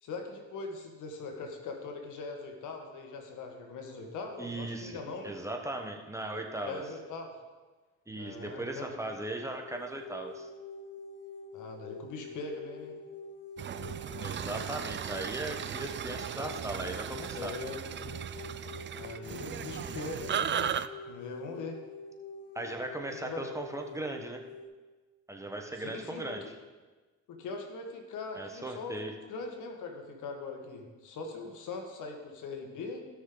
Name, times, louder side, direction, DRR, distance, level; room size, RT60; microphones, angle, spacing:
voice 1, 0.0-5.3 6.6-7.3 8.2-8.9 11.5-12.9 17.3-17.8 18.9-20.8 21.1-21.8 23.1-23.5 25.8-26.5 27.3-29.0 29.3-33.1, left 3 dB, 80° left, 3 dB, 1.7 m, -41 dB
voice 2, 4.4-5.0 5.2-6.8 8.1-10.5 14.2-17.5 22.5-24.4 25.3-26.4 28.3-29.1, right 2 dB, 10° right, 2 dB, 1.2 m, -38 dB
sound 1, 9.6-24.7, left 3 dB, 40° left, 2.6 m, -46 dB
sound 2, 13.6-20.9, right 9 dB, 40° right, 0.4 m, -36 dB
17.0 x 6.3 x 3.9 m, 1.3 s
cardioid pair, 90°, 30 cm